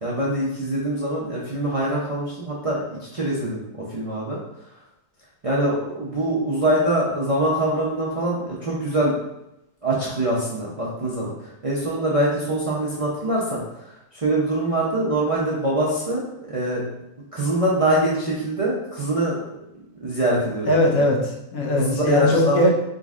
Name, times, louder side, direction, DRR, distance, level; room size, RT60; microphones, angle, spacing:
voice 1, 0.0-3.6 3.9-4.4 5.4-9.2 9.8-11.3 11.6-13.6 14.1-16.2 16.5-16.9 17.3-19.4 20.0-20.8 21.8-22.7, right 1 dB, 40° right, -6 dB, 0.5 m, -23 dB
voice 2, 20.7-22.7, left 1 dB, 85° left, -1 dB, 1.3 m, -20 dB
4.1 x 3.8 x 2.4 m, 0.86 s
omnidirectional pair, 1.5 m